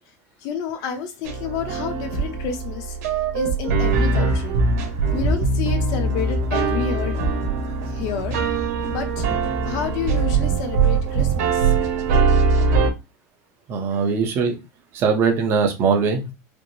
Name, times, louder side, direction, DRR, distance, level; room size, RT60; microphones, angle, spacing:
voice 1, 0.4-3.0 3.3-4.6 5.1-7.2 7.6-8.4 8.8-9.3 9.6-11.9 13.9-14.0, left 7 dB, 45° left, 0.7 m, -30 dB
sound 1, 1.2-12.9, right 4 dB, 90° right, 1.4 m, -22 dB
sound 2, 4.3-12.7, right 3 dB, 70° right, 1.9 m, -35 dB
voice 2, 13.7-14.6 14.9-16.3, right 5 dB, 30° right, 0.8 m, -20 dB
5.1 x 2.1 x 3.1 m
supercardioid pair, 180°, 8 cm